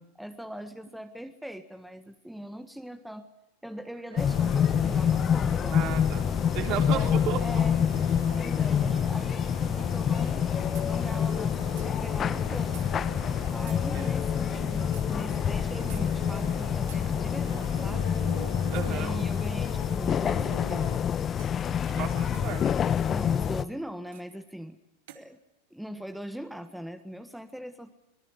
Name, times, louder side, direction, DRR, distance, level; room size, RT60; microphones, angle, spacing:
voice 1, 0.2-3.3 3.6-5.9 6.8-7.1 7.4-7.8 8.4-10.5 10.8-12.8 13.5-18.2 18.8-21.0 23.1-24.8 25.1-25.4 25.7-27.9, right 1 dB, ahead, 7 dB, 1.6 m, -41 dB
sound 1, 4.1-21.0, right 5 dB, 90° right, 4.2 m, -44 dB
sound 2, 4.2-23.6, left 8 dB, 30° left, 1.0 m, -27 dB
voice 2, 5.7-6.3 6.5-7.4 11.2-11.3 13.9-14.1 18.7-19.2 21.9-22.8, right 10 dB, 50° right, 4 dB, 4.3 m, -34 dB
sound 3, 10.7-10.9 11.8-11.9 12.7-12.9 13.7-13.9 14.9-15.1 15.9-16.1 16.9-17.1 18.7-19.0 20.3-20.5 21.4-21.6 22.3-22.5 24.1-24.3 25.1-25.3, right 12 dB, 70° right, 2.6 m, -49 dB
25.5 x 19.0 x 8.1 m, 0.88 s
hypercardioid pair, 100°, 0 cm